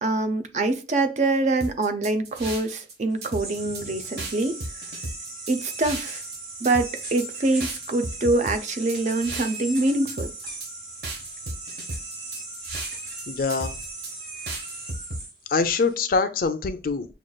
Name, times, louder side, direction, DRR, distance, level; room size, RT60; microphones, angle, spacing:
voice 1, 0.0-4.6 5.5-6.2 6.6-10.3, right 2 dB, 40° right, 0.5 m, -25 dB
sound 1, 1.6-2.9 3.2-3.8 4.2-6.4 6.6-7.3 7.6-9.8 10.1-10.7 11.0-13.2 13.5-14.1 14.5-15.2, right 2 dB, 65° right, 0.9 m, -35 dB
sound 2, 3.1-15.9, right 2 dB, 80° right, 1.6 m, -38 dB
voice 2, 13.3-13.8 15.5-17.1, left 4 dB, 55° left, 0.4 m, -24 dB
6.1 x 2.4 x 2.2 m
head